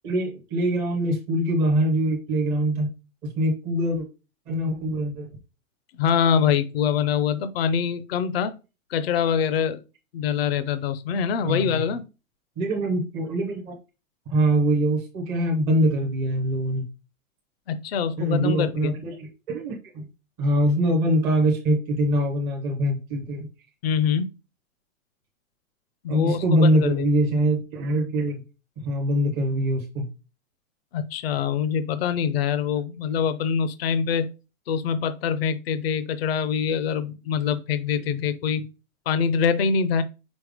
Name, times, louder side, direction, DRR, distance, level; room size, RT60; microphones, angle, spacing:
voice 1, 0.0-2.9 3.2-4.1 4.5-5.3 11.4-11.8 12.6-13.7 14.3-16.8 18.2-20.1 20.4-23.5 26.1-28.4 28.8-30.1 38.1-38.2, right 1 dB, 5° right, -1 dB, 0.5 m, -23 dB
voice 2, 6.0-8.5 8.9-9.8 10.1-12.0 17.7-18.9 23.8-24.3 26.0-27.1 30.9-34.3 34.7-38.6 39.1-40.0, left 7 dB, 45° left, 12 dB, 0.6 m, -24 dB
5.3 x 4.3 x 4.8 m, 0.30 s
hypercardioid pair, 170°, 42 cm